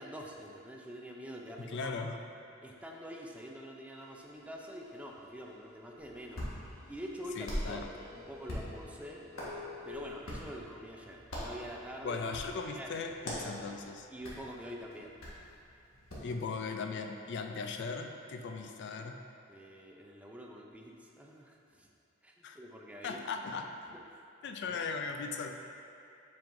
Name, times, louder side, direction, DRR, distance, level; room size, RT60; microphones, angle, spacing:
voice 1, 0.0-2.0 2.6-6.5 6.9-9.2 9.8-12.2 12.5-12.9 13.3-13.6 14.1-15.1 19.5-21.9 22.2-23.2 23.9-24.0 24.7-24.8, equal, 5° right, -1 dB, 0.4 m, -46 dB
voice 2, 1.7-2.2 7.4-7.9 12.0-14.1 16.2-19.2 22.4-22.6 23.0-23.7 24.4-25.5, left 4 dB, 55° left, 5 dB, 0.4 m, -38 dB
sound 1, 3.9-10.2, left 5 dB, 35° left, 1.1 m, -52 dB
Hands, 6.0-16.3, equal, 75° left, 1.5 m, -44 dB
7.4 x 5.3 x 2.6 m, 2.6 s
head